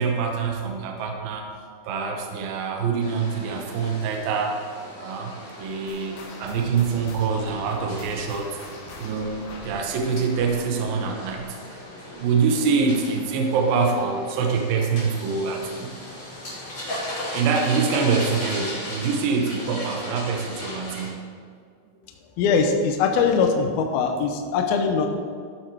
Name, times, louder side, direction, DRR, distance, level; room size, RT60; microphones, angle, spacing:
voice 1, 0.0-1.5 1.8-4.7 5.0-8.6 9.0-11.8 12.1-16.1 17.3-21.3, right 5 dB, 75° right, 2 dB, 2.1 m, -25 dB
sound 1, 3.0-21.1, left 1 dB, 30° left, 3.3 m, -37 dB
sound 2, 5.9-12.7 13.0-13.3 13.9-14.0 14.8-14.9, left 3 dB, 65° left, 2.9 m, -44 dB
voice 2, 22.4-25.1, left 5 dB, 80° left, 3 dB, 2.2 m, -21 dB
14.0 x 7.7 x 4.7 m, 2.1 s
omnidirectional pair, 5.4 m